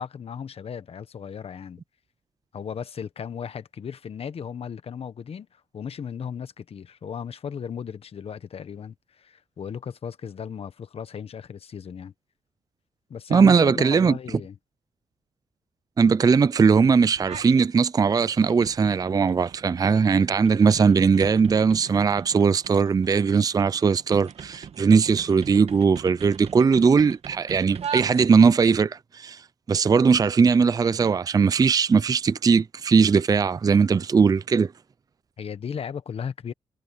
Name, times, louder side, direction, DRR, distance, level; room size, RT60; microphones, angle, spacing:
voice 1, 0.0-1.8 2.5-12.1 13.1-14.5 35.4-36.5, left 7 dB, 55° left, 1.3 m, -36 dB
voice 2, 13.3-14.1 16.0-29.4 29.7-34.7, right 5 dB, 30° right, 0.5 m, -19 dB
sound 1, 17.2-17.7 18.0-28.6, right 7 dB, 55° right, 1.4 m, -40 dB
cardioid pair, 85°, 12 cm